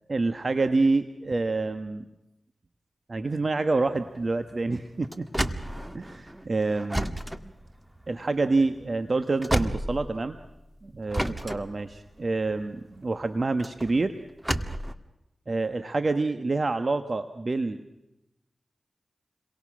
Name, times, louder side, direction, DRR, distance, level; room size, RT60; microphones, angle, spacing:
voice 1, 0.1-2.0 3.1-5.3 5.9-7.2 8.1-10.4 10.8-14.2 15.5-17.8, right 3 dB, 50° right, 9 dB, 1.4 m, -27 dB
sound 1, 3.9-10.6 11.1-14.9, right 1 dB, 10° right, 1.7 m, -32 dB
29.5 x 23.0 x 6.3 m, 0.93 s
cardioid pair, 45°, 0 cm